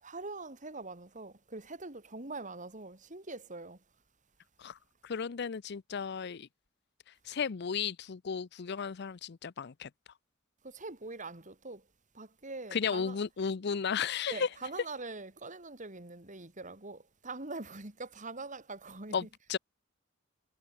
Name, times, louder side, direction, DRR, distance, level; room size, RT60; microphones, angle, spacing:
voice 1, 0.0-3.8 10.6-11.8 12.1-13.2 14.3-19.3, right 3 dB, 40° right, 3.7 m, -43 dB
voice 2, 5.0-6.5 7.2-9.9 12.7-14.5 19.1-19.6, left 6 dB, 60° left, 0.5 m, -34 dB
head